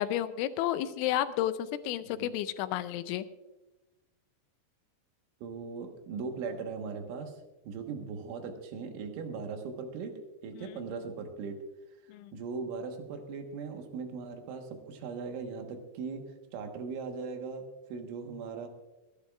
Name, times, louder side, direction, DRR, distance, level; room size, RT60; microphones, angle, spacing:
voice 1, 0.0-3.3 12.1-12.3, left 12 dB, 85° left, 12 dB, 2.9 m, -31 dB
voice 2, 2.0-2.3 5.4-7.3 7.7-11.6 12.3-16.3 16.5-18.7, right 5 dB, 80° right, 4 dB, 3.7 m, -39 dB
26.0 x 11.0 x 2.4 m, 1.1 s
omnidirectional pair, 5.5 m